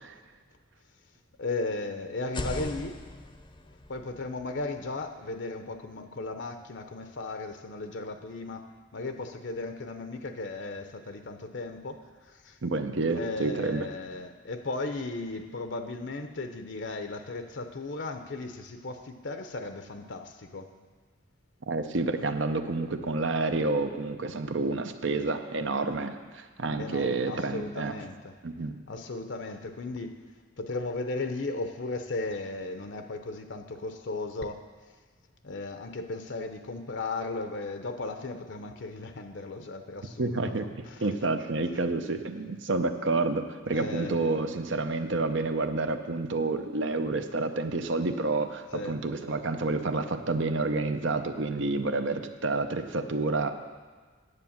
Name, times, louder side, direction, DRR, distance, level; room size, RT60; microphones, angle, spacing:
voice 1, 1.4-3.0 3.9-8.7 8.9-12.6 13.1-20.7 26.8-28.4 28.9-30.2 30.6-34.6 35.4-41.0 43.7-44.4 48.7-49.0, left 3 dB, 65° left, 7 dB, 0.7 m, -36 dB
sound 1, 2.2-6.0, left 2 dB, 25° left, 0.6 m, -41 dB
voice 2, 12.6-13.9 21.7-28.0 28.4-28.8 40.2-53.5, right 3 dB, 65° right, 8 dB, 0.7 m, -29 dB
9.8 x 7.9 x 7.2 m, 1.4 s
head